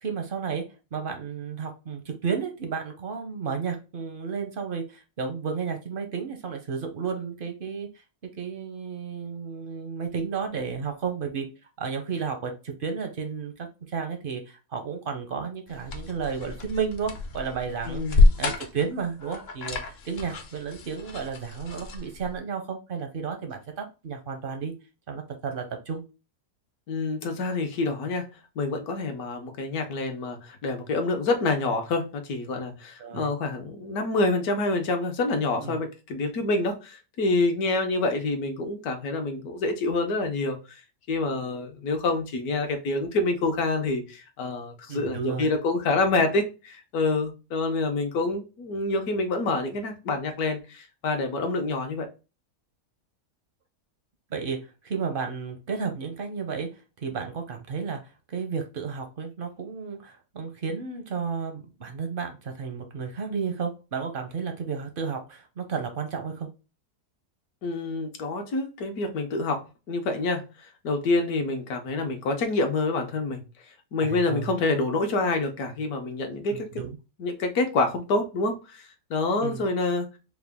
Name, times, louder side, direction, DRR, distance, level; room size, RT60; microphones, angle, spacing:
voice 1, 0.0-8.0 8.4-11.5 11.8-24.7 25.1-26.0 33.0-33.3 35.6-35.8 44.9-45.5 54.3-54.6 54.8-56.7 57.0-66.5 74.0-74.5 76.5-77.0 79.4-79.6, right 6 dB, 55° right, 5 dB, 0.6 m, -32 dB
sound 1, 15.7-22.4, left 3 dB, 50° left, 0.8 m, -27 dB
voice 2, 17.9-18.4 26.9-28.2 28.6-40.8 41.1-52.1 67.6-73.4 73.9-76.7 77.2-80.2, left 3 dB, 70° left, 5 dB, 1.3 m, -27 dB
4.8 x 2.2 x 3.4 m, 0.30 s
omnidirectional pair, 1.7 m